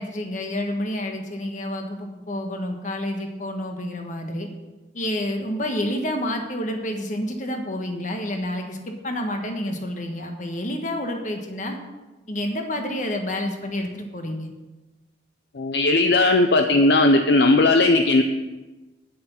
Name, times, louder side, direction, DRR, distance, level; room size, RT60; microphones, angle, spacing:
voice 1, 0.0-4.5 4.9-11.8 12.3-14.5, left 1 dB, 40° left, 4 dB, 1.4 m, -29 dB
voice 2, 15.5-18.2, left 2 dB, 60° left, 5 dB, 0.6 m, -17 dB
9.4 x 7.8 x 5.6 m, 1.1 s
head